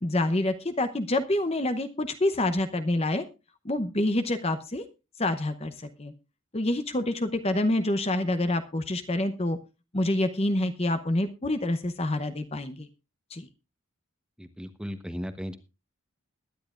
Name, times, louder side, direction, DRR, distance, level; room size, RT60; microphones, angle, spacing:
voice 1, 0.0-3.2 3.6-4.8 5.2-5.7 6.0-6.1 6.5-9.6 9.9-12.9 13.3-13.5, left 1 dB, 30° left, 9 dB, 0.8 m, -27 dB
voice 2, 14.4-15.6, equal, 5° right, 9 dB, 1.0 m, -36 dB
21.5 x 10.5 x 2.5 m, 0.28 s
head